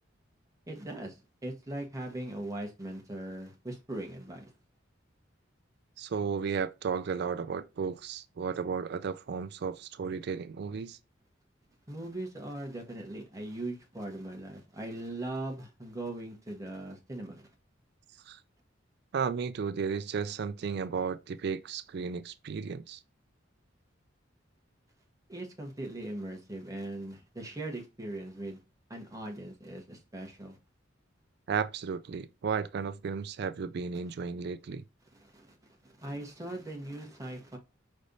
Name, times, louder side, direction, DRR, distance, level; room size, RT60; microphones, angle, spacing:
voice 1, 0.7-1.2 1.4-4.5 11.9-17.5 25.3-28.6 28.9-30.6 35.1-37.6, right 1 dB, 15° right, 1.2 m, -40 dB
voice 2, 6.0-11.0 18.3-18.4 19.1-23.0 31.5-34.8, right 6 dB, 55° right, 0.4 m, -34 dB
5.1 x 3.3 x 2.6 m
head